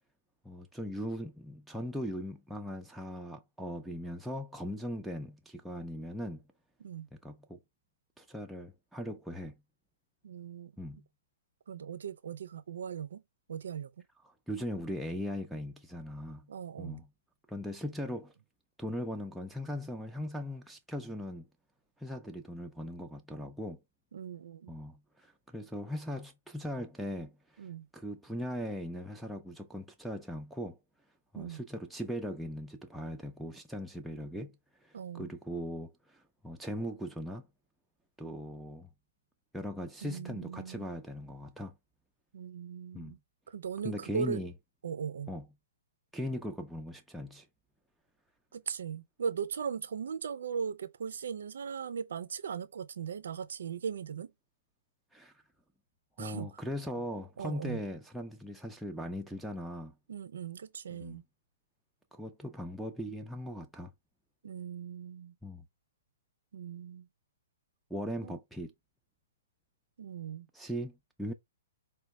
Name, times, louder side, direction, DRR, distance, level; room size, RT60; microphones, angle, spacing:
voice 1, 0.4-6.4 7.1-7.6 8.2-9.5 10.8-11.1 14.2-16.5 16.8-17.1 17.5-18.3 18.8-21.5 22.0-23.8 24.7-30.8 31.3-37.4 38.2-38.9 39.5-41.7 42.9-43.2 43.8-44.5 45.3-45.5 46.1-47.5 55.1-55.3 56.2-59.9 60.9-61.2 62.1-63.9 65.4-65.6 67.9-68.7 70.5-71.3, equal, ahead, 0.4 m, -39 dB
voice 2, 10.2-10.7 11.7-13.2 13.5-13.9 16.5-17.0 24.1-24.7 27.6-27.9 31.4-31.6 34.9-35.3 40.0-40.9 42.3-43.2 43.5-44.4 44.8-45.3 48.5-54.3 56.2-56.5 57.4-57.8 60.1-61.2 64.4-65.3 66.5-67.1 68.2-68.4 70.0-70.5, right 7 dB, 65° right, 0.4 m, -38 dB
4.9 x 2.2 x 3.0 m
figure-of-eight pair, 115°, 0 cm